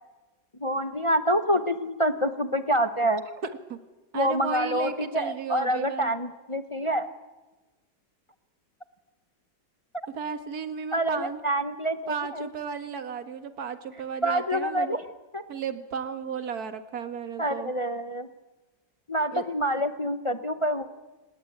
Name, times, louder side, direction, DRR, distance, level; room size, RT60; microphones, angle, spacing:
voice 1, 0.6-3.2 4.1-7.1 10.9-12.5 14.2-15.0 15.3-15.4 17.4-18.3 19.1-20.9, equal, 30° left, 9 dB, 0.5 m, -27 dB
voice 2, 4.1-6.1 10.1-11.4 12.1-15.0 15.5-17.7 19.3-19.4, right 6 dB, 55° right, 8 dB, 2.0 m, -34 dB
29.5 x 18.5 x 8.7 m, 1.2 s
omnidirectional pair, 2.0 m